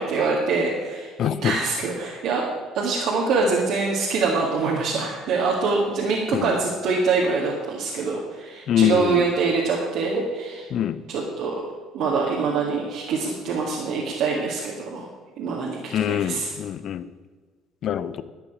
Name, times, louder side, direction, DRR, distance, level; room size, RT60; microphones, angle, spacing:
voice 1, 0.0-1.1 1.4-2.5 2.7-10.7 11.1-11.7 11.9-15.1 15.4-16.5, right 4 dB, 70° right, -3 dB, 2.1 m, -24 dB
voice 2, 1.2-1.5 6.3-6.5 8.7-9.3 10.7-11.0 15.9-17.1 17.8-18.2, left 10 dB, 60° left, 15 dB, 0.7 m, -24 dB
12.0 x 6.1 x 8.8 m, 1.4 s
hypercardioid pair, 60°, 0 cm